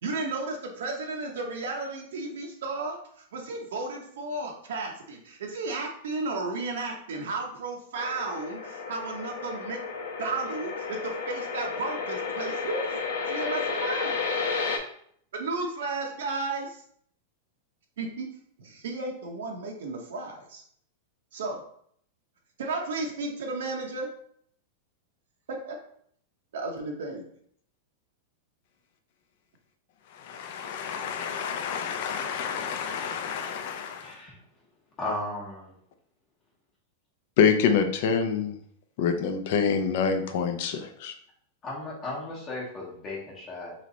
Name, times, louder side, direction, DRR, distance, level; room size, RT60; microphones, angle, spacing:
voice 1, 0.0-9.8 10.2-12.9 13.3-14.2 15.3-16.8 18.0-18.3 18.6-20.6 21.3-21.6 22.6-24.1 25.5-25.8 26.5-27.2, right 3 dB, 80° right, 1 dB, 0.8 m, -33 dB
sound 1, 7.9-14.8, left 5 dB, 80° left, 0.8 m, -32 dB
voice 2, 30.1-34.2 37.4-38.6 39.0-41.2, left 6 dB, 45° left, 6 dB, 0.5 m, -27 dB
voice 3, 34.0-34.4 35.0-35.7 41.6-43.7, left 2 dB, 20° left, -4 dB, 0.9 m, -35 dB
3.2 x 3.1 x 3.9 m, 0.64 s
supercardioid pair, 175°, 0 cm